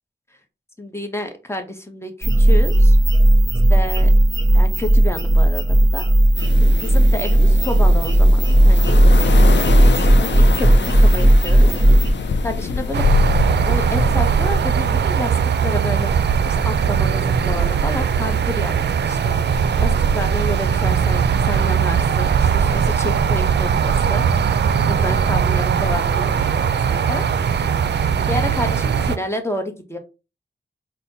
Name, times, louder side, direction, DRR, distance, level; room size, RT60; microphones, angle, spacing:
voice 1, 0.8-3.0 3.7-4.1 4.5-6.0 6.6-9.0 9.9-11.8 12.4-13.0 13.6-16.1 16.5-18.7 19.0-24.3 24.8-27.2 28.3-30.0, left 1 dB, 15° left, 5 dB, 0.9 m, -29 dB
sound 1, 2.2-12.1, right 1 dB, 20° right, 1.4 m, -14 dB
sound 2, 6.4-14.7, left 4 dB, 75° left, 0.5 m, -25 dB
sound 3, 12.9-29.2, right 7 dB, 65° right, 0.4 m, -19 dB
4.1 x 2.2 x 4.0 m, 0.29 s
wide cardioid pair, 70°, 19 cm